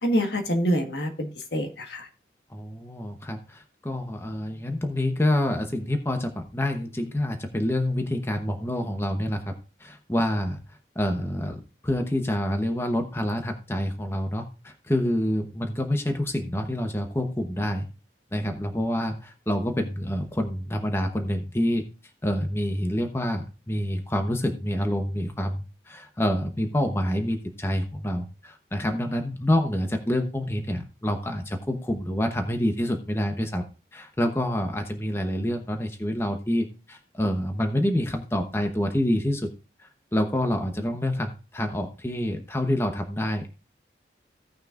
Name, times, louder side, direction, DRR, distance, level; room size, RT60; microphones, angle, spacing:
voice 1, 0.0-2.1, equal, 70° left, 5 dB, 1.5 m, -26 dB
voice 2, 2.5-9.5 9.8-10.6 10.9-17.9 18.3-21.8 22.2-33.6 33.9-39.5 39.8-43.5, left 1 dB, 15° left, 5 dB, 0.9 m, -27 dB
16.5 x 6.2 x 2.5 m, 0.32 s
head